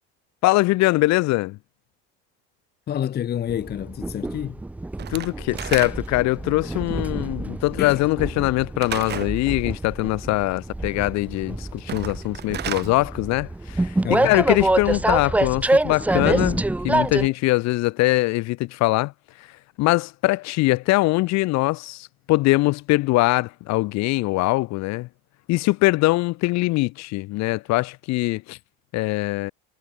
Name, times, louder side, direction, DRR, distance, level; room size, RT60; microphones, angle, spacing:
voice 1, 0.4-1.6 5.1-14.0 14.2-19.1 19.4-19.5 19.8-25.1 25.5-28.6 28.9-29.5, left 20 dB, 60° left, 1.8 m, -22 dB
voice 2, 2.9-4.6 7.8-8.0 14.0-14.3, left 10 dB, 30° left, 1.1 m, -28 dB
Train, 3.5-17.3, right 2 dB, 5° right, 0.6 m, -26 dB
Slam / Wood, 5.0-6.3 8.8-9.4 11.8-12.9, right 10 dB, 35° right, 1.1 m, -32 dB
supercardioid pair, 120°, 31 cm